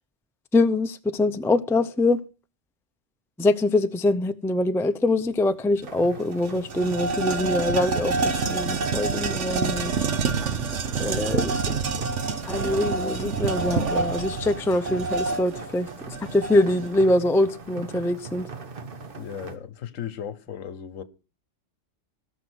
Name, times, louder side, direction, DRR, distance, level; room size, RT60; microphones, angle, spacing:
voice 1, 0.5-2.2 3.4-9.9 11.0-11.8 12.5-15.9 16.2-18.5, left 2 dB, 5° left, 0.3 m, -24 dB
sound 1, 5.8-19.6, right 4 dB, 45° right, 1.3 m, -41 dB
sound 2, 5.8-5.9 6.2-16.9, right 4 dB, 65° right, 1.4 m, -27 dB
voice 2, 11.3-11.7 11.9-12.1 19.2-21.0, left 8 dB, 80° left, 1.3 m, -37 dB
18.0 x 6.2 x 6.3 m
omnidirectional pair, 1.3 m